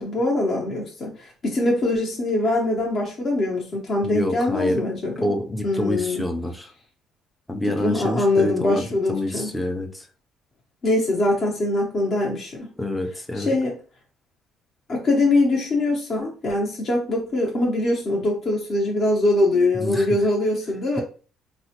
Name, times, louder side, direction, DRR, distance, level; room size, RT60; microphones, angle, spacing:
voice 1, 0.0-5.3 5.6-6.2 7.8-9.5 10.8-12.7 13.3-13.8 14.9-21.0, left 2 dB, 40° left, -2 dB, 0.7 m, -23 dB
voice 2, 4.0-4.8 5.1-6.7 7.5-10.1 12.8-13.5 19.7-20.1, left 1 dB, 5° left, 4 dB, 0.4 m, -27 dB
4.0 x 2.1 x 2.8 m, 0.38 s
cardioid pair, 135°, 0 cm